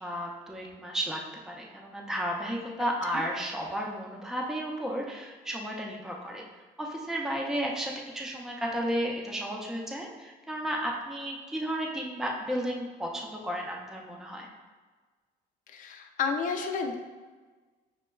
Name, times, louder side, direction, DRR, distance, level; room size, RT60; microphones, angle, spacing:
voice 1, 0.0-6.4 6.8-14.5, equal, 5° right, -1 dB, 0.4 m, -33 dB
voice 2, 15.7-17.0, left 5 dB, 50° left, 5 dB, 0.4 m, -31 dB
6.1 x 2.2 x 2.2 m, 1.3 s
cardioid pair, 110°, 17 cm